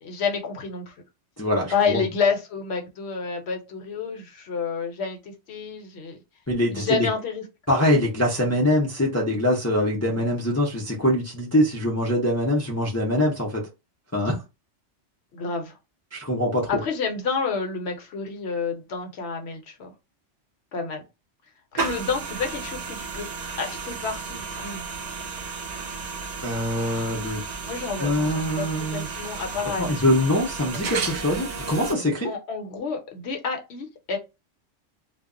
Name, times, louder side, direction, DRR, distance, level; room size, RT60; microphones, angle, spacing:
voice 1, 0.0-0.9 1.7-6.2 6.7-7.4 15.3-15.8 16.7-19.9 20.7-21.0 21.7-23.3 23.6-24.9 27.7-30.2 32.2-34.2, left 5 dB, 65° left, 0.9 m, -29 dB
voice 2, 1.4-2.0 6.5-7.1 7.7-13.6 14.1-14.4 16.1-16.7 26.4-27.4 28.0-29.1 29.8-32.3, left 1 dB, 25° left, 0.3 m, -23 dB
sound 1, 21.8-31.9, right 4 dB, 60° right, 0.4 m, -33 dB
2.2 x 2.0 x 3.6 m
omnidirectional pair, 1.2 m